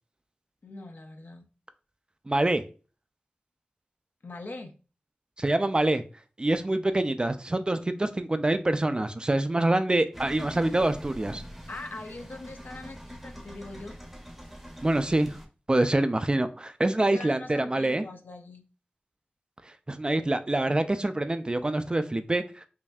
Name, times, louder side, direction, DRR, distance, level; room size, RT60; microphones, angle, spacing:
voice 1, 0.6-1.5 4.2-4.7 11.7-14.0 17.0-18.6, left 2 dB, 65° left, 0.6 m, -42 dB
voice 2, 2.3-2.6 5.4-6.0 6.4-11.4 14.8-15.4 15.7-18.0 19.9-22.6, right 2 dB, 25° right, 0.3 m, -25 dB
sound 1, 10.1-15.5, equal, 5° right, 0.7 m, -44 dB
5.3 x 2.6 x 2.3 m
wide cardioid pair, 85°, 3 cm